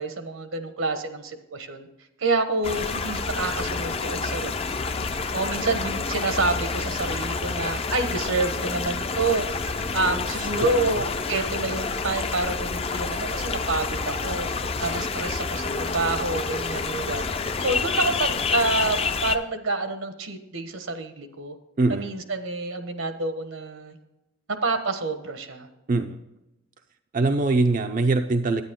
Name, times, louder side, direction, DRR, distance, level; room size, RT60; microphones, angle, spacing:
voice 1, 0.0-1.9 2.2-4.9 5.3-9.5 9.9-14.5 14.8-17.2 17.6-21.5 21.9-24.0 24.5-25.7, right 3 dB, 80° right, 8 dB, 1.2 m, -28 dB
sound 1, 2.6-19.4, left 4 dB, 30° left, 0.5 m, -28 dB
voice 2, 10.0-10.9 21.8-22.1 25.9-26.2 27.1-28.6, right 3 dB, 40° right, 6 dB, 0.5 m, -24 dB
10.5 x 9.6 x 3.7 m, 0.94 s
head